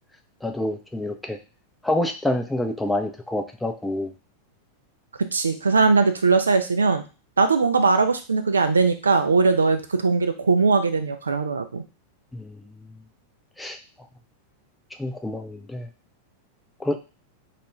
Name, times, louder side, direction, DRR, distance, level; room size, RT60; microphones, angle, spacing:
voice 1, 0.4-1.4 1.8-4.1 12.3-12.7 13.6-13.8 15.0-15.9 16.8-17.0, left 1 dB, 5° left, 4 dB, 0.4 m, -27 dB
voice 2, 5.3-7.0 7.4-11.8, right 4 dB, 75° right, 8 dB, 0.3 m, -20 dB
2.3 x 2.2 x 3.1 m, 0.32 s
figure-of-eight pair, 90°, 0 cm